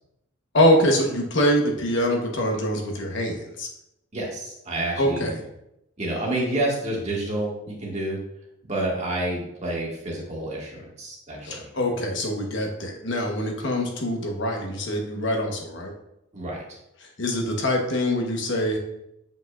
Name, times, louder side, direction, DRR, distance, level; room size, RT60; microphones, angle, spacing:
voice 1, 0.5-3.7 5.0-5.4 11.4-15.9 17.0-18.8, equal, 60° left, 1 dB, 1.1 m, -24 dB
voice 2, 4.1-5.3 6.0-8.2 8.7-11.6 16.3-16.8, right 1 dB, 35° right, -3 dB, 1.7 m, -29 dB
8.1 x 5.3 x 2.4 m, 0.82 s
head